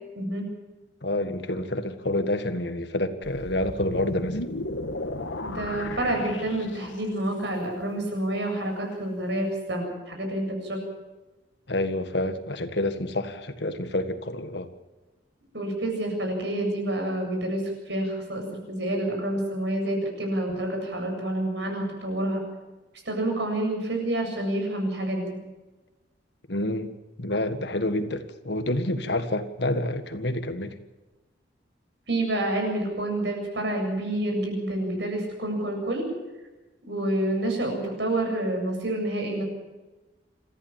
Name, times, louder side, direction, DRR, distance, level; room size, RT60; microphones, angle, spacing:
voice 1, 0.1-0.5 5.4-10.8 15.5-22.4 23.1-25.4 32.1-36.1 36.8-39.4, right 1 dB, 70° right, 2 dB, 7.8 m, -28 dB
voice 2, 1.0-4.4 11.7-14.7 26.5-26.9 27.2-30.8, left 1 dB, 65° left, 9 dB, 1.7 m, -28 dB
sound 1, 3.2-7.2, left 2 dB, 90° left, 1.8 m, -35 dB
26.5 x 14.5 x 7.4 m, 1.1 s
head